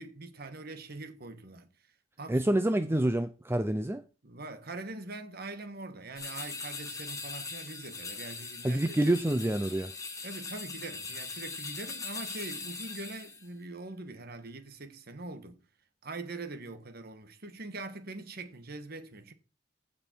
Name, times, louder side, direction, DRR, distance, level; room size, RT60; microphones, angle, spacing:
voice 1, 0.0-1.7 2.2-2.4 2.9-3.0 4.2-9.1 10.2-15.6 16.0-19.3, right 2 dB, 55° right, 1.5 m, -43 dB
voice 2, 2.3-4.0 8.6-9.9, right 1 dB, 10° right, 0.5 m, -27 dB
sound 1, 6.2-13.5, left 4 dB, 15° left, 1.9 m, -41 dB
15.5 x 5.4 x 4.5 m
head